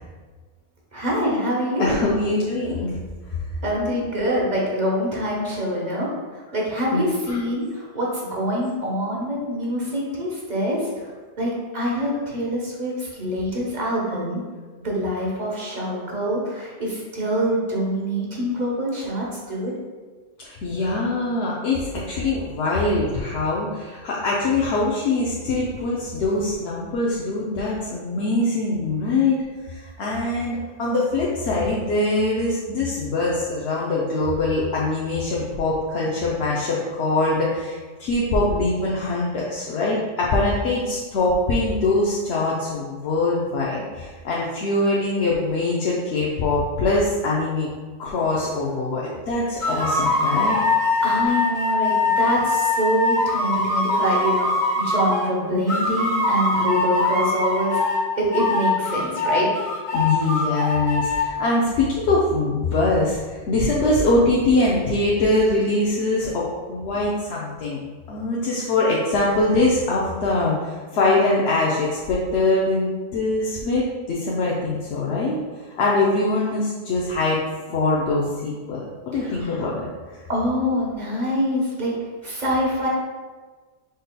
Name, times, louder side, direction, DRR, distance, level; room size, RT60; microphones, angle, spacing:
voice 1, 0.9-2.0 3.6-10.8 11.4-14.4 14.8-19.7 51.0-57.8 58.2-59.5 79.1-79.4 80.3-81.9 82.2-82.9, equal, 45° right, -3 dB, 1.1 m, -25 dB
voice 2, 1.8-3.0 3.3-3.4 6.9-7.4 20.4-29.4 29.6-47.7 48.0-50.6 59.9-67.8 68.1-75.4 75.8-77.4 77.7-80.2, left 2 dB, 85° left, -4 dB, 0.9 m, -23 dB
sound 1, 49.6-55.3 55.7-58.0 58.3-61.2, left 2 dB, 50° left, 1.4 m, -22 dB
5.3 x 4.0 x 2.2 m, 1.4 s
omnidirectional pair, 1.1 m